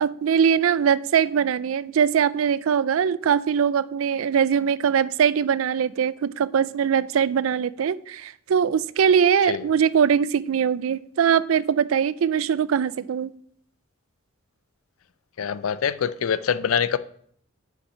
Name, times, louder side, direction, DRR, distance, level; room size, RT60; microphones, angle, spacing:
voice 1, 0.0-13.3, right 7 dB, 75° right, 0.4 m, -21 dB
voice 2, 15.4-17.0, left 7 dB, 85° left, 0.4 m, -24 dB
7.2 x 5.7 x 5.5 m
head